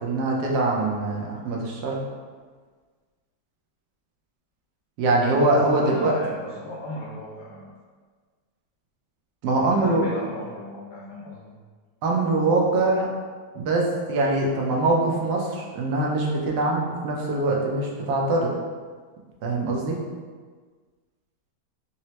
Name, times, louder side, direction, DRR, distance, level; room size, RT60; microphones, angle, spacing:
voice 1, 0.0-2.0 5.0-6.1 9.4-10.0 12.0-13.1 13.5-18.5 19.4-20.0, right 2 dB, 90° right, -2 dB, 1.2 m, -23 dB
voice 2, 5.8-7.7 9.5-11.6, left 1 dB, 85° left, -5 dB, 1.2 m, -36 dB
4.1 x 2.0 x 2.8 m, 1.5 s
omnidirectional pair, 1.7 m